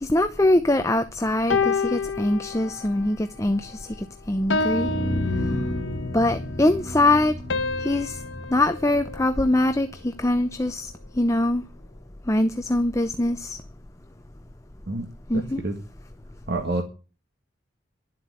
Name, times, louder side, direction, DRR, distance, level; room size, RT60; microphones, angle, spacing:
voice 1, 0.0-4.9 6.1-7.4 7.8-8.2 8.5-10.9 11.2-11.6 12.3-13.6 15.3-15.6, left 1 dB, 15° left, 0.7 m, -23 dB
sound 1, 1.5-3.1 3.5-3.8 4.5-6.2 7.5-9.9, left 4 dB, 80° left, 1.3 m, -29 dB
sound 2, 4.4-10.4, left 1 dB, 65° left, 2.6 m, -32 dB
voice 2, 15.3-15.8 16.5-16.8, right 2 dB, 55° right, 2.0 m, -28 dB
12.0 x 7.9 x 9.9 m
head